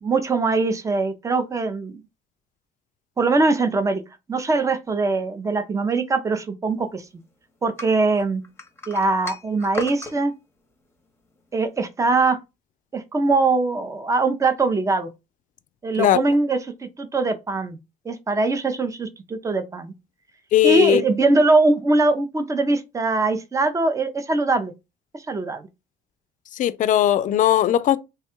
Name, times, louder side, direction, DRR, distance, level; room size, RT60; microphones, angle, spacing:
voice 1, 0.0-2.0 3.2-4.0 4.3-7.0 7.6-8.4 8.9-10.3 11.5-12.4 12.9-15.1 15.8-17.8 18.1-19.9 20.6-24.7 25.3-25.7, right 3 dB, 20° right, 0.5 m, -22 dB
sound 1, 7.8-10.2, left 2 dB, 15° left, 0.8 m, -35 dB
voice 2, 20.5-21.0 26.5-28.0, left 11 dB, 50° left, 0.4 m, -18 dB
3.3 x 2.3 x 4.4 m
cardioid pair, 110°, 17 cm